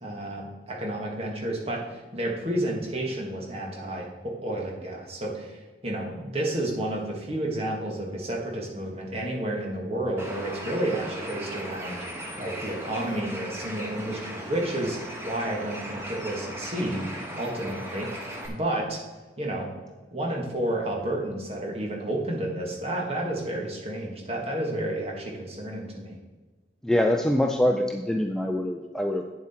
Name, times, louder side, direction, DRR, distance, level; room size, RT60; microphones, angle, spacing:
voice 1, 0.0-12.1 12.4-17.1 17.3-18.1 18.5-19.0 19.4-19.7 20.1-26.2, right 1 dB, 35° right, -1 dB, 1.7 m, -31 dB
Bird, 10.2-18.5, equal, 15° right, 1.3 m, -37 dB
voice 2, 26.8-29.2, left 1 dB, 5° left, 3 dB, 0.4 m, -24 dB
8.9 x 7.4 x 4.3 m, 1.3 s
head